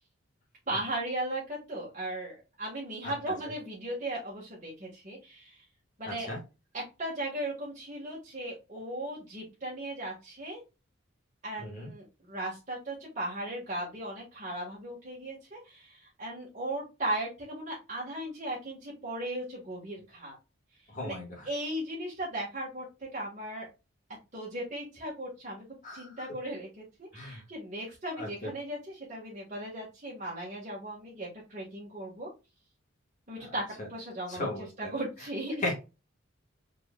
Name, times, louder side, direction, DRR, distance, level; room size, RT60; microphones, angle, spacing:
voice 1, 0.7-5.6 6.0-6.4 6.7-10.6 11.4-20.4 21.0-21.2 21.4-23.7 24.3-25.6 25.9-32.3 33.3-35.6, right 1 dB, 35° right, -5 dB, 1.7 m, -37 dB
voice 2, 6.1-6.4 11.6-11.9 20.9-21.3 25.8-26.1 27.1-27.4 28.2-28.3 33.4-33.5 34.3-34.9 35.6-35.8, left 2 dB, 40° left, -1 dB, 1.8 m, -35 dB
4.7 x 4.0 x 2.3 m, 0.28 s
head